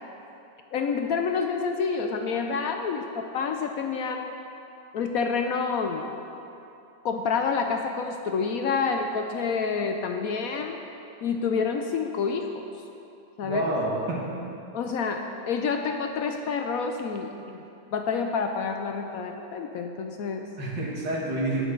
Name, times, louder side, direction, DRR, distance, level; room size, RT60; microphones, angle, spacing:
voice 1, 0.7-4.3 4.9-6.1 7.0-10.8 11.2-12.5 13.4-13.7 14.7-17.6 17.9-20.5, left 5 dB, 70° left, 4 dB, 0.9 m, -28 dB
voice 2, 13.4-14.3 20.6-21.6, right 1 dB, 80° right, -4 dB, 2.4 m, -28 dB
17.5 x 6.4 x 3.9 m, 2.8 s
omnidirectional pair, 1.9 m